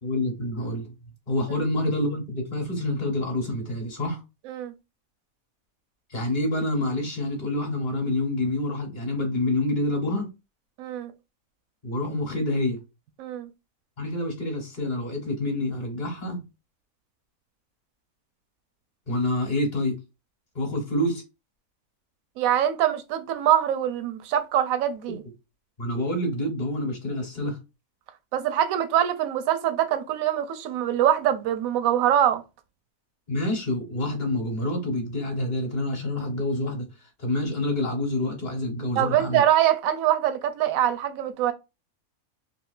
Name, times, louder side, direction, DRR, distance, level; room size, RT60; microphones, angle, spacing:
voice 1, 0.0-0.9 1.3-4.2 6.1-10.3 11.8-12.8 14.0-16.4 19.1-20.0 20.5-21.2 25.1-25.2 25.8-27.6 33.3-39.4, left 1 dB, 35° left, 1.1 m, -27 dB
voice 2, 10.8-11.1 13.2-13.5 22.4-25.2 28.3-32.4 39.0-41.5, right 11 dB, 75° right, 1.0 m, -23 dB
3.6 x 2.4 x 2.4 m
omnidirectional pair, 1.5 m